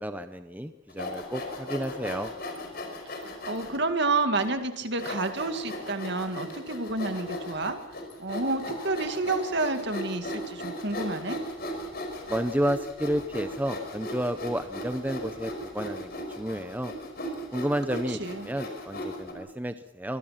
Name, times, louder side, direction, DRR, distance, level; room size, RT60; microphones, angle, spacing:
voice 1, 0.0-2.3 12.3-16.9 17.5-20.2, equal, 10° right, 9 dB, 0.7 m, -31 dB
Sawing, 0.9-3.8 4.4-4.5 5.0-19.3, left 1 dB, 45° left, 5.2 m, -37 dB
voice 2, 3.1-7.8 8.2-11.4 17.9-18.5, right 3 dB, 55° right, 8 dB, 2.2 m, -30 dB
25.0 x 22.0 x 5.9 m, 0.89 s
head